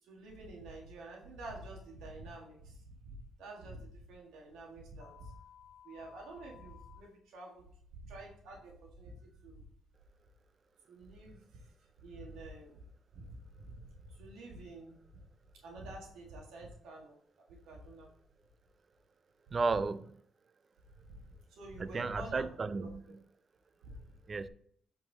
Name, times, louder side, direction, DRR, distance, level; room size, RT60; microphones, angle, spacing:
voice 1, 0.0-5.3 5.8-7.7 7.9-9.6 10.9-11.7 12.0-12.8 13.1-15.2 15.6-18.1 19.5-19.6 21.0-21.2 21.5-22.5 22.8-23.2 23.8-24.0, right 2 dB, 90° right, 1.7 m, -49 dB
sound 1, 5.0-7.0, left 10 dB, 85° left, 1.2 m, -57 dB
voice 2, 19.5-20.1 21.8-23.0 24.3-24.5, right 4 dB, 35° right, 0.4 m, -33 dB
8.8 x 4.6 x 4.0 m
cardioid pair, 90°, 0 cm